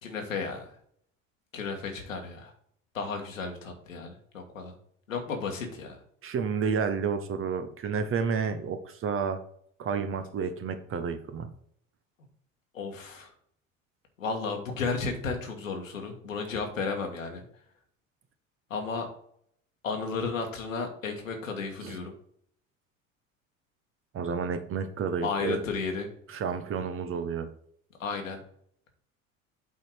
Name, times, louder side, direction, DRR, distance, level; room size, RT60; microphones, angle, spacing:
voice 1, 0.0-0.7 1.5-2.5 2.9-4.7 5.1-6.0 12.7-13.3 14.2-17.4 18.7-19.1 19.8-22.1 25.2-26.1 28.0-28.4, left 4 dB, 75° left, 3 dB, 1.7 m, -33 dB
voice 2, 6.2-9.4 9.8-11.5 21.8-22.0 24.1-25.6 26.3-27.5, right 6 dB, 35° right, 9 dB, 1.0 m, -30 dB
8.1 x 4.4 x 4.7 m, 0.63 s
figure-of-eight pair, 65°, 39 cm